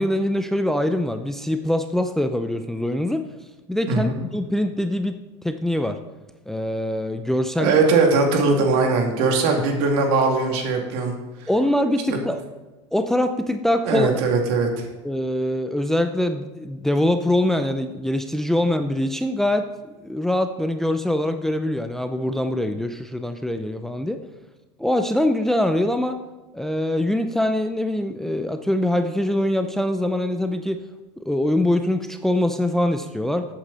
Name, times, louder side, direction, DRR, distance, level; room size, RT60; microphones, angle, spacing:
voice 1, 0.0-3.2 3.7-5.2 5.4-6.0 6.5-7.7 9.4-9.6 11.5-12.4 12.9-14.1 15.0-24.2 24.8-26.2 26.5-30.8 31.2-33.5, left 1 dB, 5° left, 8 dB, 0.6 m, -23 dB
voice 2, 3.9-4.2 7.6-11.5 13.8-14.9, right 4 dB, 65° right, 2 dB, 2.7 m, -20 dB
13.5 x 8.5 x 4.2 m, 1.2 s
supercardioid pair, 120°, 15 cm